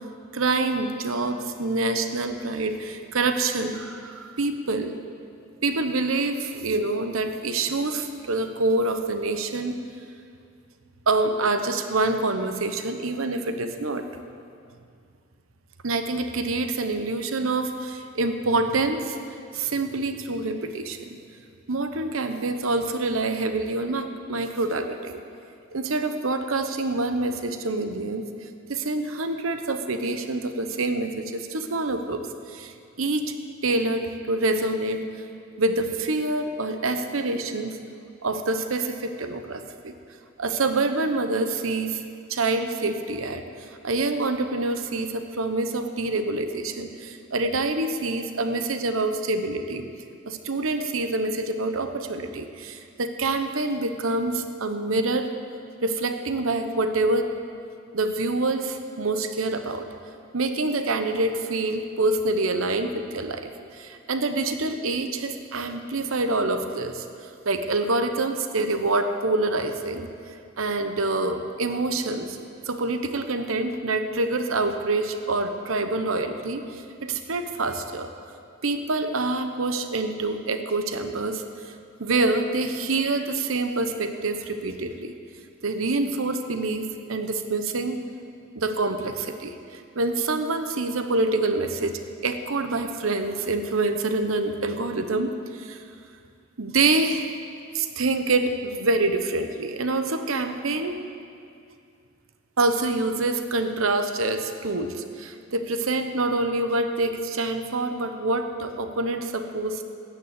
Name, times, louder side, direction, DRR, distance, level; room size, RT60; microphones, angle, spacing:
voice 1, 0.3-5.0 5.6-9.8 11.1-14.1 15.8-19.2 19.5-21.1 21.7-25.2 25.7-28.2 28.7-33.3 33.6-35.1 35.6-37.8 38.2-39.9 40.4-42.0 42.3-49.9 50.3-55.3 55.8-57.3 57.9-59.9 60.3-70.1 70.6-72.4 72.7-78.1 78.6-81.7 82.0-85.1 85.6-88.0 88.5-95.8 96.6-97.3 97.7-101.1 102.6-109.8, right 2 dB, 75° right, 8 dB, 1.0 m, -26 dB
14.0 x 9.7 x 8.1 m, 2.4 s
head